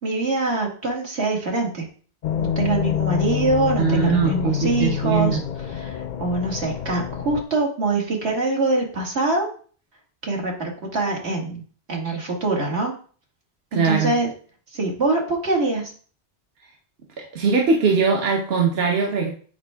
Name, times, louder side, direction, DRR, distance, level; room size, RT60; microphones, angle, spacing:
voice 1, 0.0-1.9 2.4-5.4 5.7-9.5 10.2-11.6 11.9-12.9 13.7-14.3 14.7-15.9, right 3 dB, 85° right, -1 dB, 2.1 m, -24 dB
sound 1, 2.2-7.4, left 10 dB, 55° left, 0.6 m, -27 dB
voice 2, 3.8-5.4 13.7-14.1 17.3-19.3, right 5 dB, 70° right, 1 dB, 1.1 m, -21 dB
8.7 x 4.6 x 3.4 m, 0.42 s
omnidirectional pair, 1.1 m